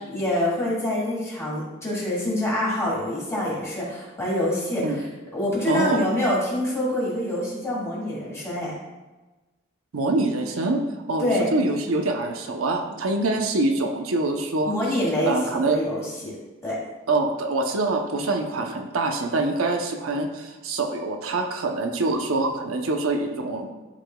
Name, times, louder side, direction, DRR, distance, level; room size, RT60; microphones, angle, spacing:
voice 1, 0.1-4.8 5.3-8.7 11.2-11.5 14.6-16.3 16.6-16.8, left 1 dB, 15° left, -6 dB, 2.3 m, -26 dB
voice 2, 5.6-6.1 9.9-10.8 11.1-14.7 15.2-15.8 17.1-23.7, right 2 dB, 85° right, 3 dB, 0.8 m, -25 dB
11.5 x 4.9 x 2.3 m, 1.2 s
head